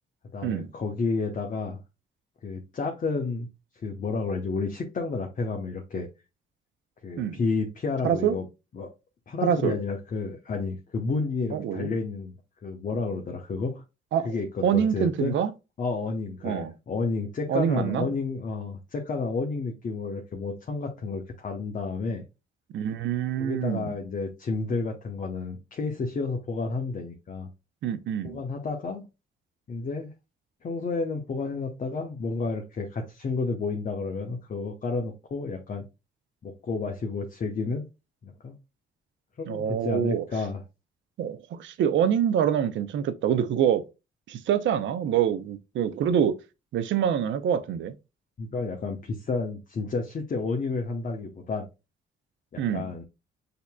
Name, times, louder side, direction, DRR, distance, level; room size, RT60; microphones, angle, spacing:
voice 1, 0.3-1.8 2.4-3.5 3.8-6.1 7.0-8.5 8.7-8.9 9.3-12.3 12.6-13.8 14.2-15.3 15.8-22.2 23.4-27.5 28.2-29.1 29.7-30.1 30.6-35.8 36.4-37.8 38.2-38.5 39.4-40.6 48.4-51.7 52.5-53.0, left 4 dB, 40° left, 0.9 m, -31 dB
voice 2, 9.4-9.8 11.5-11.9 14.1-14.3 14.6-15.5 16.4-16.7 17.5-18.1 22.7-23.9 27.8-28.4 39.5-40.2 41.2-43.8 44.3-46.3 46.7-47.9 52.6-52.9, right 9 dB, 70° right, 0.6 m, -25 dB
6.6 x 2.9 x 2.2 m
cardioid pair, 90°, 20 cm